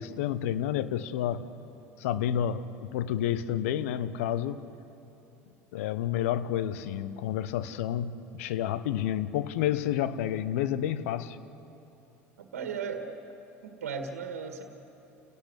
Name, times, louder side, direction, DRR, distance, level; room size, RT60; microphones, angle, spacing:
voice 1, 0.0-1.4 2.0-4.6 5.7-11.4, left 10 dB, 70° left, 0.9 m, -30 dB
voice 2, 12.4-13.2 13.6-14.6, right 6 dB, 80° right, 1.8 m, -36 dB
29.0 x 18.0 x 8.3 m
hypercardioid pair, 70°, 8 cm